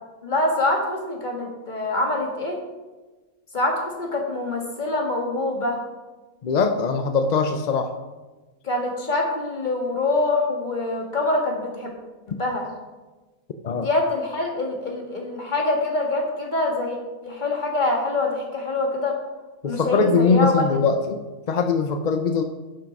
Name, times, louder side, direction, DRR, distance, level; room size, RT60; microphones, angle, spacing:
voice 1, 0.2-2.6 3.5-5.8 8.6-11.9 12.3-12.7 13.7-17.0 17.2-19.1 19.6-20.8, left 2 dB, 30° left, 0 dB, 1.9 m, -25 dB
voice 2, 6.4-7.9 13.6-13.9 19.6-22.4, left 4 dB, 50° left, 6 dB, 0.5 m, -21 dB
11.0 x 6.0 x 5.3 m, 1.2 s
omnidirectional pair, 1.5 m